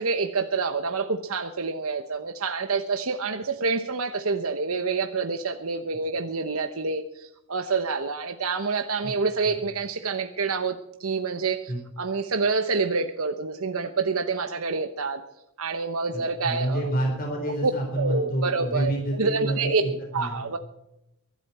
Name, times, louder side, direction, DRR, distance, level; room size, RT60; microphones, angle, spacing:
voice 1, 0.0-15.2 15.6-16.8 17.6-17.7 18.0-18.9 19.2-19.8 20.1-20.6, right 4 dB, 75° right, 7 dB, 1.0 m, -27 dB
voice 2, 16.1-20.5, right 1 dB, 40° left, 0 dB, 4.2 m, -28 dB
23.0 x 12.0 x 4.4 m, 0.85 s
head